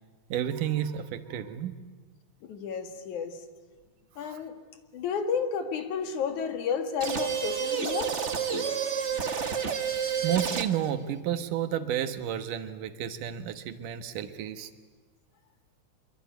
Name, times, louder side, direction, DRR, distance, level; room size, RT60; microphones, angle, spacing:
voice 1, 0.3-1.7 4.2-4.4 10.2-14.7, right 10 dB, 90° right, 9 dB, 2.9 m, -31 dB
voice 2, 2.4-3.4 4.2-4.5 4.9-8.2, left 6 dB, 70° left, 7 dB, 3.2 m, -31 dB
sound 1, 7.0-10.9, right 7 dB, 65° right, 0.7 m, -30 dB
25.0 x 23.5 x 9.2 m, 1.4 s
omnidirectional pair, 3.6 m